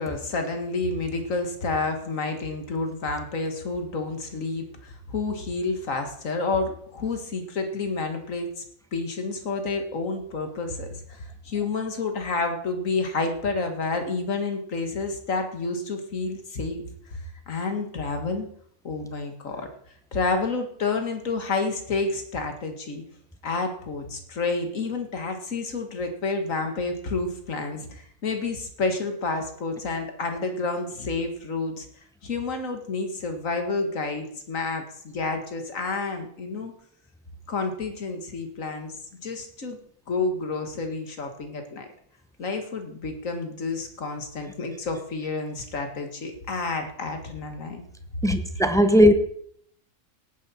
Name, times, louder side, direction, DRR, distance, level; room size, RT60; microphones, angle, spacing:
voice 1, 0.0-8.6 8.9-16.8 17.1-18.5 18.8-19.7 20.1-23.0 23.4-31.9 32.2-36.7 37.5-39.8 40.1-41.9 42.4-47.8, left 3 dB, 60° left, 5 dB, 2.0 m, -29 dB
voice 2, 48.2-49.1, equal, 5° left, 8 dB, 0.5 m, -17 dB
17.0 x 9.5 x 4.3 m, 0.65 s
omnidirectional pair, 1.6 m